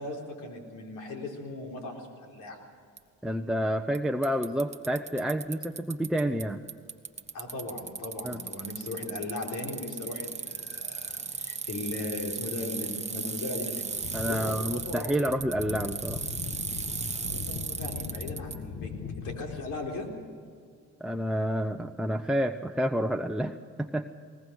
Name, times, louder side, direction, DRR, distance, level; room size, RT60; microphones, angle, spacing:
voice 1, 0.0-2.6 7.3-15.4 17.3-20.1, left 2 dB, 85° left, 1 dB, 4.1 m, -38 dB
Bicycle, 3.0-3.1 4.0-4.1 4.2-6.4 6.7-18.6, right 5 dB, 20° right, 1.2 m, -36 dB
voice 2, 3.2-6.6 8.2-8.4 14.1-16.2 21.0-24.1, equal, ahead, 3 dB, 0.8 m, -29 dB
sound 1, 13.9-19.9, left 5 dB, 65° left, 1.8 m, -40 dB
21.0 x 19.0 x 6.5 m, 2.1 s
cardioid pair, 90°, 30 cm